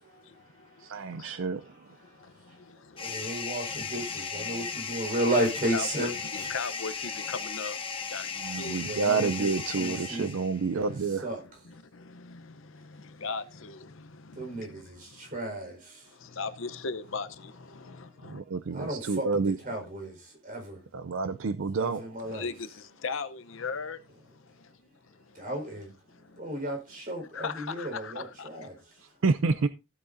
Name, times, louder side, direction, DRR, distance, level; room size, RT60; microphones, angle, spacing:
voice 1, 0.0-6.1 6.4-6.5 8.8-11.7 14.3-16.0 17.8-18.0 18.4-20.8 21.7-22.5 25.3-25.9 26.4-29.1, right 1 dB, 40° right, 4.6 m, -35 dB
voice 2, 0.8-1.6 8.4-11.2 18.3-19.6 20.9-22.0 29.2-29.7, right 4 dB, 60° right, 0.5 m, -28 dB
sound 1, 3.0-10.7, left 5 dB, 25° left, 1.0 m, -36 dB
voice 3, 5.7-6.1 6.3-7.8 8.1-8.3 8.6-8.8 13.2-13.8 16.4-17.5 22.3-22.5 23.0-24.0 27.3-28.2, left 5 dB, 60° left, 0.8 m, -35 dB
15.0 x 8.6 x 2.6 m
head